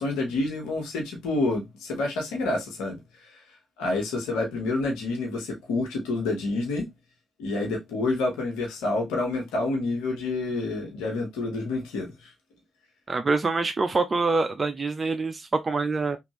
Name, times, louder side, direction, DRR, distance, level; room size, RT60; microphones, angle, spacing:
voice 1, 0.0-3.0 3.8-6.9 7.4-12.3, left 2 dB, 85° left, 0.9 m, -28 dB
voice 2, 13.1-16.2, right 3 dB, 40° right, 0.5 m, -25 dB
3.1 x 2.5 x 2.9 m
hypercardioid pair, 45°, 0 cm